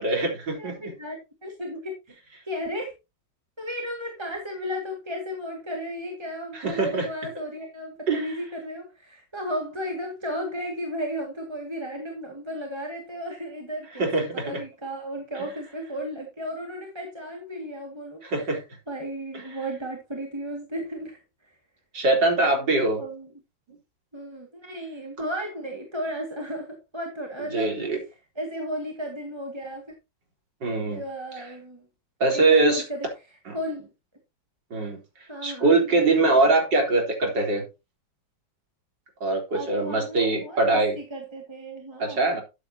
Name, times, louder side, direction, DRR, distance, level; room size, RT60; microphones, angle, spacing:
voice 1, 0.0-0.9 6.5-7.1 8.1-8.3 14.0-14.6 18.2-18.6 21.9-23.0 27.5-28.0 30.6-31.0 32.2-32.8 33.5-33.6 34.7-35.0 35.4-37.7 39.2-41.0 42.0-42.4, right 2 dB, 75° right, 4.5 m, -23 dB
voice 2, 0.6-1.9 2.5-2.9 3.6-18.5 18.9-21.2 23.0-23.3 24.1-27.8 28.4-29.8 30.9-31.9 32.3-33.1 33.5-33.9 35.3-36.3 39.5-42.2, equal, 15° right, 2.1 m, -34 dB
13.0 x 8.3 x 2.9 m
omnidirectional pair, 2.0 m